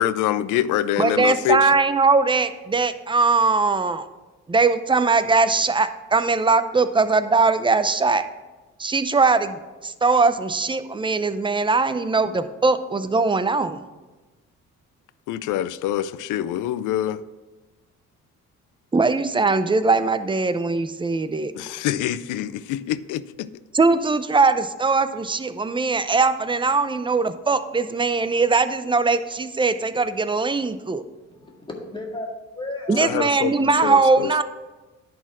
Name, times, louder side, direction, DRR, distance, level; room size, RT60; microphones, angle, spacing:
voice 1, 0.0-1.7 15.3-17.2 21.5-23.5 33.0-34.3, left 11 dB, 85° left, 17 dB, 0.5 m, -25 dB
voice 2, 1.0-4.0 4.5-8.2 8.8-9.6 9.8-13.8 18.9-21.5 23.7-31.0 32.9-34.4, right 4 dB, 15° right, 11 dB, 0.5 m, -20 dB
voice 3, 31.3-32.3 32.5-33.1 33.4-34.4, left 2 dB, 15° left, -1 dB, 1.9 m, -35 dB
10.5 x 4.3 x 6.1 m, 1.2 s
cardioid pair, 90°, 30 cm